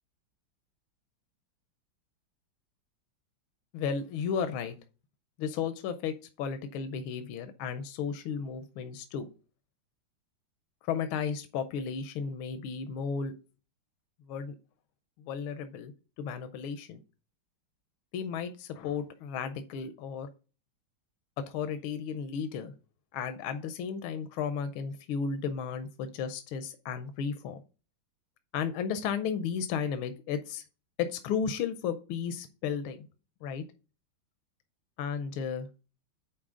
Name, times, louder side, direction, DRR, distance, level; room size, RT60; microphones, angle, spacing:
voice 1, 3.7-4.7 5.4-9.3 10.8-13.3 14.3-14.5 15.2-17.0 18.1-20.3 21.5-22.7 23.1-27.6 28.5-30.6 31.0-33.1 33.4-33.6 35.0-35.7, left 6 dB, 85° left, 9 dB, 1.5 m, -34 dB
8.7 x 4.6 x 3.6 m, 0.34 s
omnidirectional pair, 2.3 m